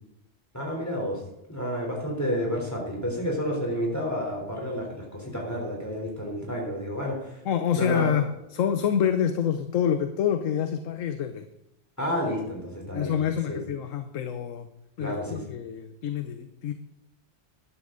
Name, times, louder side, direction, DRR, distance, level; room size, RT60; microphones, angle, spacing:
voice 1, 0.5-1.2 1.5-7.4 7.7-8.3 12.0-13.2 13.5-13.6 15.0-15.4, equal, 10° left, -1 dB, 3.7 m, -30 dB
voice 2, 7.5-8.3 8.5-11.4 12.9-14.7 15.0-16.7, left 8 dB, 75° left, 8 dB, 1.1 m, -27 dB
13.5 x 11.0 x 3.9 m, 0.87 s
omnidirectional pair, 1.4 m